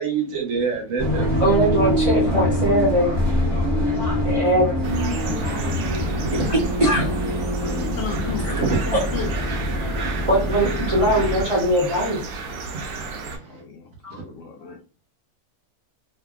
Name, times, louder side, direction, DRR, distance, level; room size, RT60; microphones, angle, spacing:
voice 1, 0.0-1.6 5.3-5.4 5.8-6.5 8.6-8.7, right 6 dB, 65° right, 1.0 m, -27 dB
sound 1, 1.0-11.4, equal, 30° left, 0.8 m, -24 dB
voice 2, 1.4-3.1 4.2-4.7 6.5-7.0 8.9-9.0 10.3-12.2 14.0-14.2, right 1 dB, 30° right, 0.6 m, -20 dB
sound 2, 4.8-13.4, right 4 dB, 85° right, 1.1 m, -33 dB
voice 3, 6.2-6.7 7.0-9.3 13.5-14.8, left 5 dB, 70° left, 0.9 m, -35 dB
2.7 x 2.6 x 2.3 m
omnidirectional pair, 1.6 m